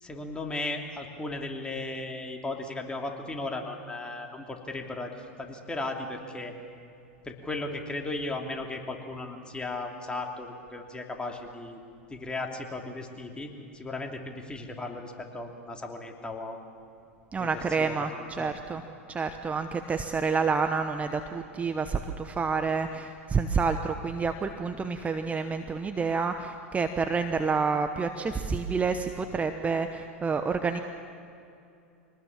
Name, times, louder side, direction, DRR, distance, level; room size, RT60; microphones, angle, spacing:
voice 1, 0.0-6.5 7.2-11.8 12.1-16.6 17.4-17.5 17.8-18.5, left 2 dB, 15° left, 2 dB, 2.9 m, -36 dB
voice 2, 17.3-18.8 19.1-30.8, right 5 dB, 20° right, 8 dB, 1.0 m, -29 dB
24.5 x 19.5 x 7.4 m, 2.6 s
hypercardioid pair, 95°, 7 cm